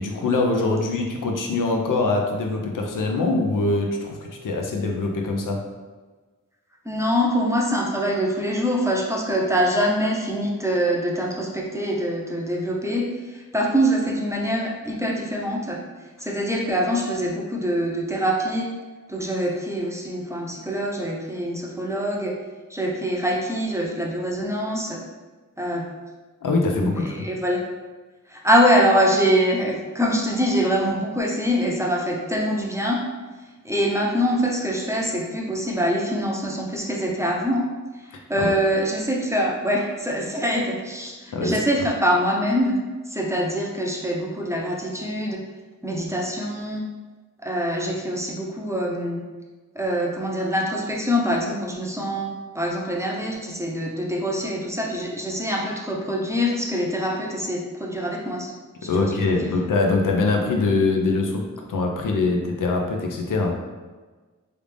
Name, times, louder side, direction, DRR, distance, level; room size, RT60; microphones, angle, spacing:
voice 1, 0.0-5.6 26.4-27.2 38.4-38.5 41.3-41.6 58.8-63.6, left 3 dB, 80° left, 1 dB, 0.6 m, -23 dB
voice 2, 6.8-15.8 16.2-18.7 19.1-22.4 22.7-25.0 25.6-25.9 27.0-27.6 28.3-33.0 33.6-37.6 38.3-42.7 43.1-45.4 45.8-46.8 47.4-49.2 49.7-52.3 52.5-58.5 58.8-59.5, equal, 10° right, -3 dB, 0.6 m, -24 dB
3.3 x 2.5 x 3.3 m, 1.3 s
wide cardioid pair, 65°, 32 cm